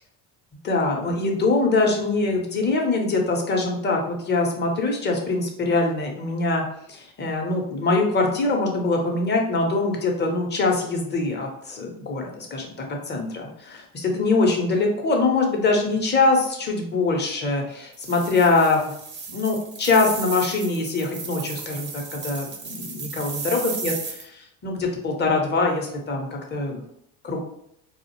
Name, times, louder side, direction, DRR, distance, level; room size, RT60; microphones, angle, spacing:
voice 1, 0.6-6.6 6.9-12.7 13.1-18.9 19.3-26.8 27.2-27.4, left 3 dB, 25° left, 1 dB, 0.6 m, -23 dB
sound 1, 17.9-24.2, right 5 dB, 30° right, 0.4 m, -35 dB
2.3 x 2.0 x 2.9 m, 0.72 s
supercardioid pair, 95°, 41 cm